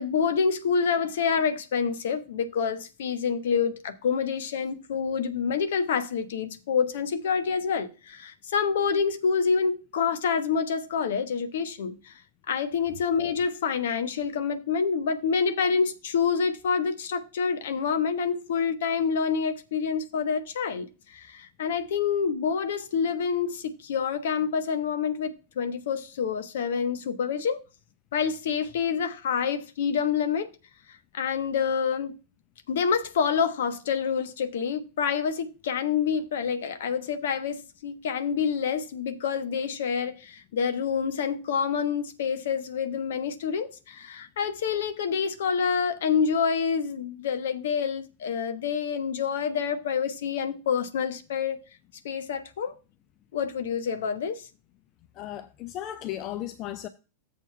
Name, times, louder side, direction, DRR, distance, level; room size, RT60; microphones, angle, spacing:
voice 1, 0.0-12.1 12.5-27.6 28.1-30.5 30.9-32.1 32.7-51.6 52.0-52.7 53.3-54.5, left 6 dB, 60° left, 1.2 m, -27 dB
voice 2, 55.2-56.9, left 12 dB, 35° left, 0.7 m, -35 dB
7.5 x 4.5 x 5.7 m
figure-of-eight pair, 90°, 0 cm